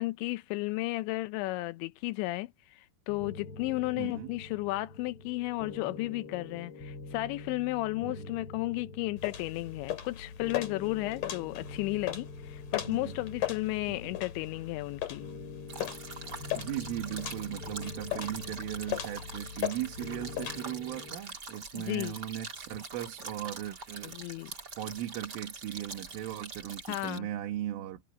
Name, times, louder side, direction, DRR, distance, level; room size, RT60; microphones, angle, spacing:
voice 1, 0.0-15.3 21.7-22.1 24.0-24.5 26.9-27.3, left 20 dB, 80° left, 2.7 m, -34 dB
sound 1, 3.1-21.2, left 3 dB, 30° left, 4.9 m, -46 dB
voice 2, 4.0-4.3 8.0-8.3 12.9-13.2 13.9-14.2 16.6-24.4 24.7-28.0, right 12 dB, 80° right, 4.6 m, -38 dB
sound 2, 9.2-20.6, left 12 dB, 50° left, 3.4 m, -38 dB
sound 3, 15.7-27.2, right 4 dB, 25° right, 2.6 m, -44 dB
omnidirectional pair, 5.7 m